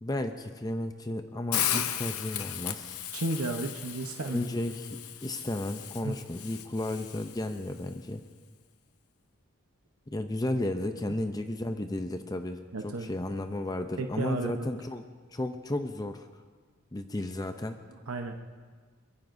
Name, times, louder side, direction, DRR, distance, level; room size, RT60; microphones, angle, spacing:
voice 1, 0.0-3.0 4.3-8.2 10.1-16.3 16.9-17.8, left 1 dB, 15° left, 7 dB, 0.5 m, -33 dB
Hiss, 1.5-7.6, left 10 dB, 90° left, 0.8 m, -35 dB
voice 2, 3.1-4.4 6.0-6.1 12.7-13.1 14.0-14.7 18.1-18.3, right 2 dB, 80° right, 4 dB, 0.9 m, -33 dB
24.0 x 21.0 x 2.6 m, 1.5 s
head